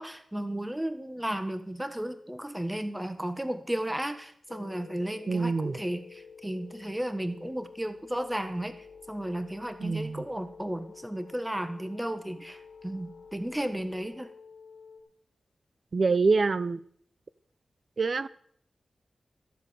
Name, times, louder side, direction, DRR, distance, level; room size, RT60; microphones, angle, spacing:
voice 1, 0.0-14.3, right 1 dB, 10° right, 10 dB, 1.4 m, -34 dB
sound 1, 4.5-15.0, left 5 dB, 90° left, 1.7 m, -50 dB
voice 2, 5.3-5.8 9.8-10.2 15.9-16.8 18.0-18.3, right 4 dB, 55° right, 17 dB, 0.5 m, -25 dB
13.5 x 7.7 x 6.5 m, 0.65 s
cardioid pair, 50°, 0 cm